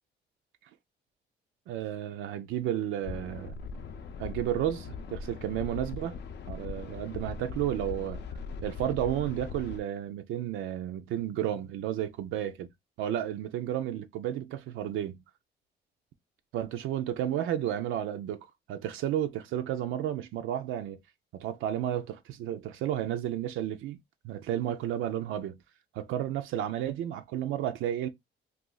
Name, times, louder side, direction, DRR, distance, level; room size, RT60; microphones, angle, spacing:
voice 1, 1.7-3.5 4.2-6.2 6.5-8.2 8.6-12.7 13.0-15.2 16.5-21.0 21.3-24.0 24.2-25.6 25.9-28.1, right 11 dB, 85° right, 0.4 m, -32 dB
sound 1, 3.0-9.8, left 5 dB, 60° left, 0.5 m, -40 dB
2.5 x 2.4 x 3.8 m
cardioid pair, 90°, 20 cm